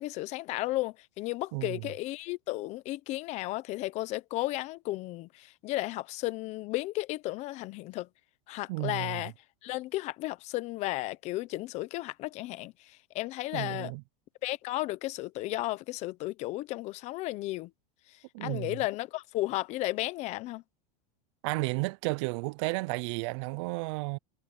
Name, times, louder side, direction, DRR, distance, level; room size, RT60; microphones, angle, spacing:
voice 1, 0.0-8.1 8.5-9.3 9.6-13.9 14.4-17.7 18.4-20.6, left 18 dB, 40° left, 0.9 m, -34 dB
voice 2, 8.7-9.2 13.5-14.0 18.3-18.8 21.4-24.2, right 27 dB, 55° right, 0.4 m, -33 dB
supercardioid pair, 155°, 19 cm